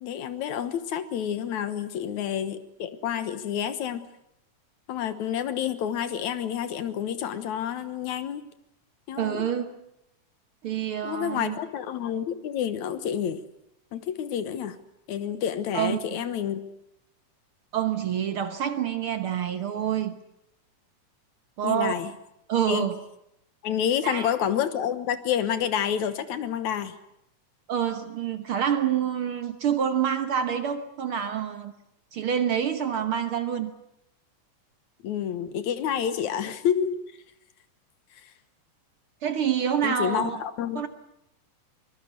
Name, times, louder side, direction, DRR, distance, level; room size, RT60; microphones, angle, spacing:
voice 1, 0.0-4.1 4.9-8.4 9.1-9.5 11.0-13.4 13.9-14.8 15.1-16.6 21.6-22.1 22.7-22.9 23.6-27.0 35.0-37.0 38.2-38.3 39.8-40.9, left 9 dB, 75° left, 2.6 m, -29 dB
voice 2, 9.2-9.8 10.6-11.6 15.7-16.0 17.7-20.1 21.6-21.9 22.5-23.0 24.0-24.3 27.7-31.7 32.1-33.7 39.2-40.4 40.8-40.9, right 9 dB, 55° right, 1.7 m, -27 dB
24.0 x 22.0 x 8.1 m
omnidirectional pair, 3.4 m